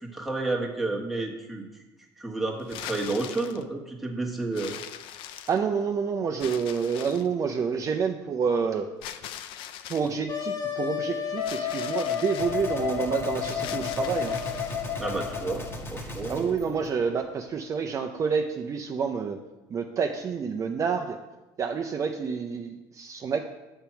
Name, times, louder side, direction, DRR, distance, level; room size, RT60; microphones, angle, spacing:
voice 1, 0.0-1.6 2.2-4.7 15.0-15.6 15.9-16.6, right 2 dB, ahead, -1 dB, 1.3 m, -31 dB
sound 1, 2.6-3.6 4.5-5.8 6.4-7.3 9.0-10.1 11.4-12.5 13.4-14.9, left 10 dB, 65° left, 0.5 m, -41 dB
voice 2, 5.5-8.9 9.9-14.4 16.3-19.4 19.7-21.2 21.6-23.4, right 6 dB, 35° right, 4 dB, 0.5 m, -28 dB
Wind instrument woodwind instrument, 10.3-15.8, left 9 dB, 45° left, 1.1 m, -31 dB
Gunshot gunfire, 12.4-17.6, left 1 dB, 25° left, 1.4 m, -38 dB
6.8 x 4.5 x 5.8 m, 1.1 s
supercardioid pair, 95°, 9 cm